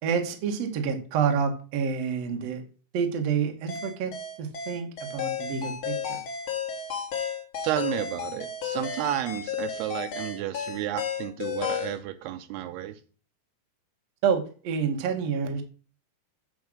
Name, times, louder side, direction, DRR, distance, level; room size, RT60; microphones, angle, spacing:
voice 1, 0.0-2.6 2.9-4.1 4.4-6.2 14.2-15.6, right 6 dB, 65° right, 5 dB, 1.6 m, -28 dB
sound 1, 3.7-12.0, left 7 dB, 85° left, 1.1 m, -33 dB
voice 2, 7.6-12.9, right 13 dB, 80° right, 11 dB, 2.6 m, -32 dB
7.9 x 4.6 x 6.4 m, 0.38 s
omnidirectional pair, 4.8 m